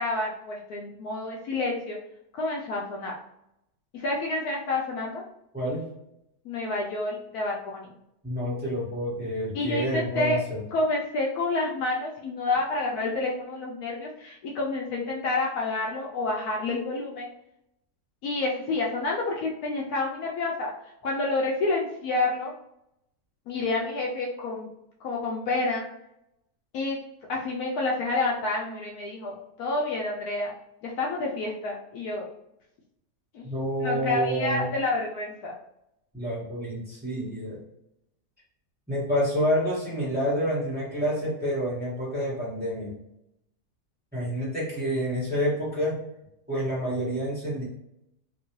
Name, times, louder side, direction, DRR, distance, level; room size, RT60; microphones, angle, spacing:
voice 1, 0.0-2.0 2.3-3.1 3.9-5.2 6.4-8.0 9.5-10.4 10.7-17.3 18.2-20.7 21.0-22.5 23.5-24.7 25.0-25.8 26.7-27.0 27.3-30.5 30.8-32.3 33.3-33.5 33.8-35.5, left 2 dB, 75° left, -2 dB, 1.0 m, -29 dB
voice 2, 5.5-5.8 8.2-10.6 33.4-34.7 36.1-37.6 38.9-42.9 44.1-46.0 46.5-47.6, equal, 5° right, -9 dB, 1.3 m, -28 dB
3.0 x 2.6 x 2.9 m, 0.82 s
omnidirectional pair, 1.8 m